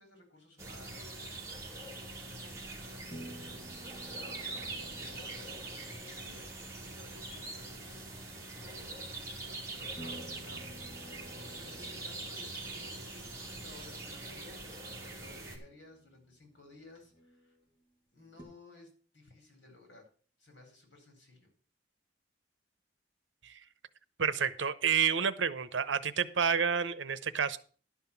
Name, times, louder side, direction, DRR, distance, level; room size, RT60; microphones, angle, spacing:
voice 1, 0.0-1.4 1.8-5.6 6.0-6.5 7.0-8.3 8.5-10.7 11.5-17.6 18.1-20.1 20.4-21.5, left 2 dB, 75° left, 3 dB, 4.8 m, -57 dB
sound 1, 0.6-15.6, right 2 dB, 15° right, 2.6 m, -43 dB
sound 2, 2.3-2.4 3.1-8.2 9.4-9.5 10.0-17.3 18.4-18.5, equal, 25° left, 2.5 m, -53 dB
voice 2, 24.2-27.6, right 7 dB, 90° right, 15 dB, 0.8 m, -29 dB
11.5 x 5.9 x 7.1 m, 0.42 s
head